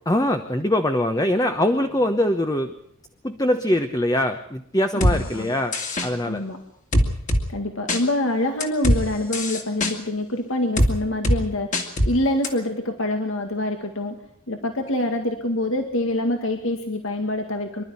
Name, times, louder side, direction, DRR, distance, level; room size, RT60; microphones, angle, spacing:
voice 1, 0.1-2.7 3.2-5.7 6.0-6.4, left 1 dB, 15° left, 6 dB, 1.0 m, -22 dB
voice 2, 4.9-5.5 6.2-6.6 7.5-14.2 14.5-17.8, left 1 dB, 65° left, 5 dB, 2.1 m, -25 dB
sound 1, 5.0-5.2 5.7-6.1 6.9-7.4 7.9-8.0 8.6-9.0 9.3-9.9 10.8-10.9 11.2-11.4 11.7-12.1 12.4-12.5, equal, 35° left, 2.5 m, -20 dB
25.5 x 12.5 x 9.7 m, 0.70 s
head